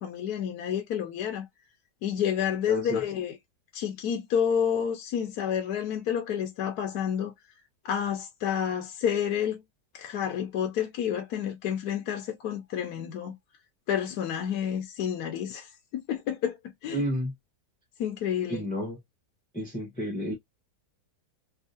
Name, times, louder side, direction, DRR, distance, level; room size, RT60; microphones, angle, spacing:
voice 1, 0.0-1.5 2.0-3.4 3.7-7.3 7.8-9.6 9.9-13.4 13.9-16.6 16.8-17.0 18.0-18.6, left 8 dB, 70° left, 1.2 m, -29 dB
voice 2, 2.7-3.0 16.9-17.3 18.5-19.0 19.5-20.3, equal, 5° left, 0.7 m, -31 dB
3.5 x 2.8 x 2.6 m
omnidirectional pair, 1.8 m